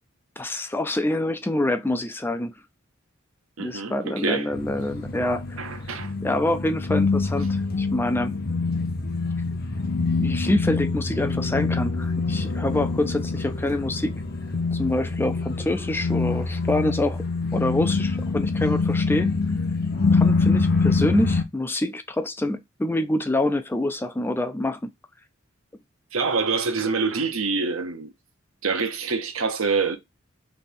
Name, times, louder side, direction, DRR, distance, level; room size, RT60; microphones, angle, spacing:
voice 1, 0.4-2.5 3.6-5.9 6.2-8.3 10.2-14.2 14.7-17.2 17.5-19.4 20.1-24.8, left 1 dB, 10° left, 0.3 m, -26 dB
voice 2, 3.6-4.5 5.6-6.1 26.1-28.1 28.6-30.0, right 4 dB, 75° right, 0.9 m, -26 dB
sound 1, 4.5-21.4, left 3 dB, 50° left, 0.7 m, -25 dB
3.3 x 3.3 x 4.2 m
head